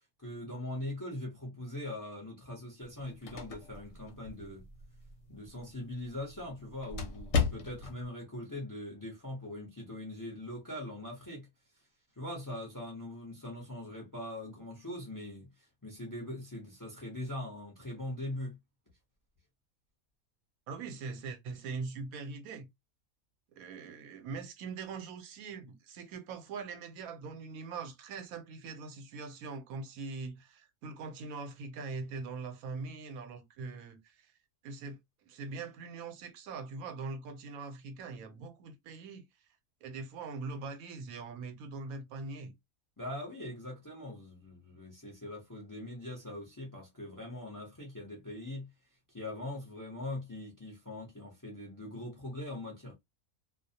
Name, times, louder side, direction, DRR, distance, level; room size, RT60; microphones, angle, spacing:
voice 1, 0.2-4.6 5.3-11.5 12.2-18.6 43.0-48.7 49.1-52.9, left 1 dB, 20° left, 0.5 m, -41 dB
sound 1, 2.8-8.1, left 6 dB, 65° left, 0.9 m, -37 dB
voice 2, 20.7-22.7 23.5-34.3 34.6-39.2 39.8-42.5, right 4 dB, 80° right, 1.0 m, -42 dB
2.4 x 2.0 x 2.6 m
omnidirectional pair, 1.5 m